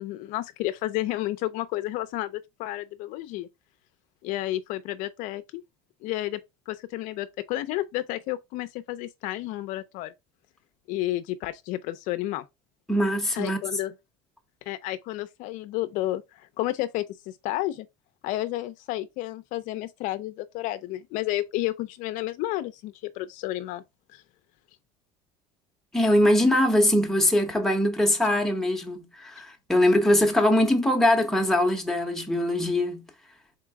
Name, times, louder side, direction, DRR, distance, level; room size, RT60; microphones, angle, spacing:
voice 1, 0.0-3.5 4.2-5.6 6.0-6.4 6.7-10.1 10.9-12.4 13.4-13.9 14.7-17.9 18.2-23.8 24.1-24.2, left 16 dB, 60° left, 0.5 m, -31 dB
voice 2, 12.9-13.6 25.9-33.0, left 1 dB, 5° left, 0.9 m, -22 dB
3.8 x 3.8 x 3.4 m
cardioid pair, 140°, 15 cm